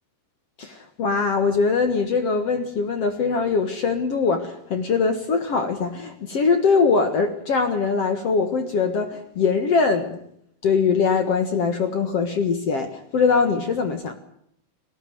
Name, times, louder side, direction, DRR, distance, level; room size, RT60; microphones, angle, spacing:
voice 1, 0.6-10.2 10.6-14.1, left 5 dB, 65° left, 8 dB, 1.5 m, -22 dB
19.0 x 18.5 x 9.2 m, 0.72 s
omnidirectional pair, 5.2 m